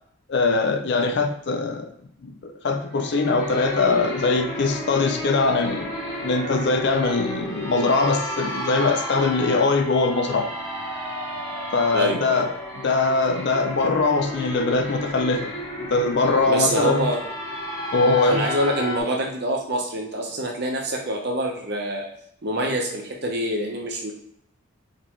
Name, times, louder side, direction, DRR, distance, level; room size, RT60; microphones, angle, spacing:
voice 1, 0.3-1.9 2.2-5.9 6.2-10.5 11.7-17.1 17.9-18.5, left 3 dB, 55° left, 6 dB, 0.4 m, -22 dB
sound 1, 2.8-19.0, equal, 20° left, 1.3 m, -32 dB
voice 2, 11.9-12.4 16.5-17.2 18.2-22.1 22.4-24.1, right 1 dB, 50° right, 0 dB, 0.9 m, -25 dB
3.8 x 3.6 x 3.1 m, 0.69 s
head